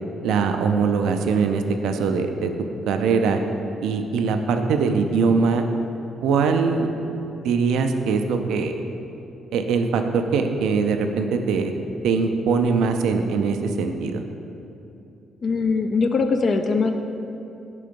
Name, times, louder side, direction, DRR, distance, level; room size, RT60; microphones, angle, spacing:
voice 1, 0.2-2.5 2.9-3.4 3.8-5.6 6.2-6.9 7.4-8.7 9.5-11.7 12.0-14.2, right 5 dB, 75° right, 6 dB, 0.3 m, -22 dB
voice 2, 15.4-16.9, left 4 dB, 55° left, 6 dB, 0.3 m, -21 dB
4.9 x 3.8 x 5.1 m, 2.8 s
hypercardioid pair, 50°, 0 cm